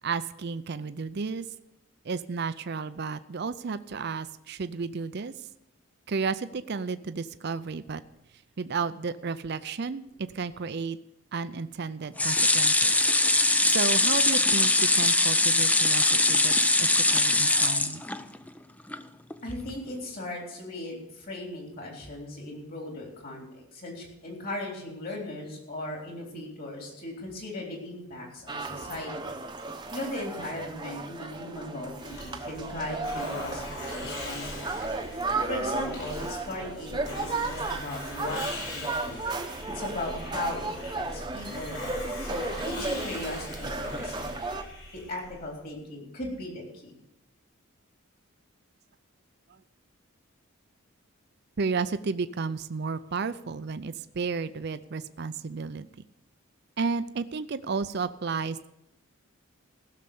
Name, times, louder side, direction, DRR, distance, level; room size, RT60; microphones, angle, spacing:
voice 1, 0.0-1.5 2.0-5.3 6.1-8.0 8.6-11.0 11.3-12.9 13.6-16.5 16.8-18.0 51.6-55.9 56.8-58.7, right 4 dB, 50° right, 12 dB, 0.5 m, -32 dB
sound 1, 12.2-18.5 18.9-19.0 19.3-19.4, left 2 dB, 5° left, 0.4 m, -22 dB
voice 2, 19.4-29.4 29.9-34.9 35.5-38.4 38.7-39.2 39.7-40.7 41.0-44.4 44.9-47.0, left 1 dB, 45° left, 0 dB, 3.6 m, -38 dB
sound 2, 28.5-44.6, right 3 dB, 20° right, 0.8 m, -34 dB
Hiss, 32.0-45.5, left 1 dB, 70° left, 5.2 m, -41 dB
16.0 x 6.7 x 6.8 m, 0.86 s
head